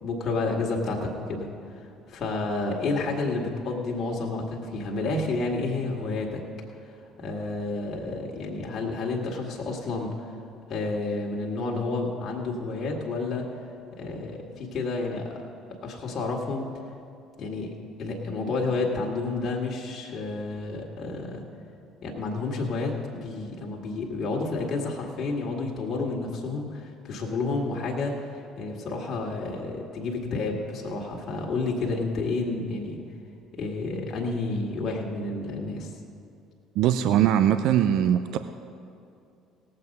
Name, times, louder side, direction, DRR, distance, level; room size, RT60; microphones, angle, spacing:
voice 1, 0.0-6.4 7.2-10.3 10.7-13.5 14.0-15.4 15.8-16.7 17.4-17.7 18.0-21.4 22.0-28.3 28.6-33.0 33.5-35.9, left 3 dB, 50° left, -2 dB, 1.9 m, -30 dB
voice 2, 36.8-38.4, right 10 dB, 65° right, 9 dB, 0.4 m, -21 dB
18.0 x 7.7 x 5.4 m, 2.5 s
hypercardioid pair, 65°, 0 cm